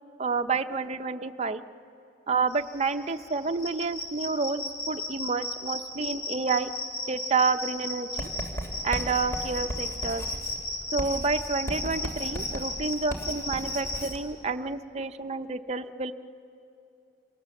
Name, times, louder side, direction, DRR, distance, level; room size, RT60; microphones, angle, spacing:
voice 1, 0.2-1.6 2.3-6.7 7.1-8.3 8.8-10.2 10.9-16.1, right 4 dB, 40° right, 7 dB, 0.7 m, -29 dB
sound 1, 2.5-14.0, left 2 dB, 80° left, 7.5 m, -35 dB
Writing, 8.2-14.2, right 1 dB, 15° left, 3.0 m, -37 dB
29.5 x 27.0 x 7.1 m, 2.7 s
head